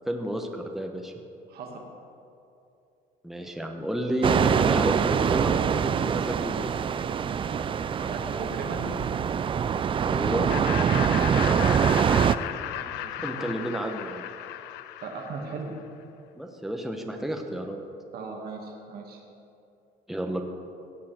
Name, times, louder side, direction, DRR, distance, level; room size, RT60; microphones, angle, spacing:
voice 1, 0.1-1.1 3.2-6.8 10.0-10.5 13.2-14.3 16.3-17.8 20.1-20.4, right 1 dB, ahead, 3 dB, 1.0 m, -31 dB
voice 2, 1.5-1.8 8.0-8.9 12.7-13.5 15.0-15.7 18.1-19.2, right 4 dB, 65° right, 1 dB, 2.2 m, -37 dB
sound 1, 4.2-12.4, right 7 dB, 30° right, 0.4 m, -24 dB
Laughter, 10.5-15.8, left 14 dB, 90° left, 0.4 m, -36 dB
17.0 x 7.5 x 4.4 m, 2.6 s
cardioid pair, 110°, 17 cm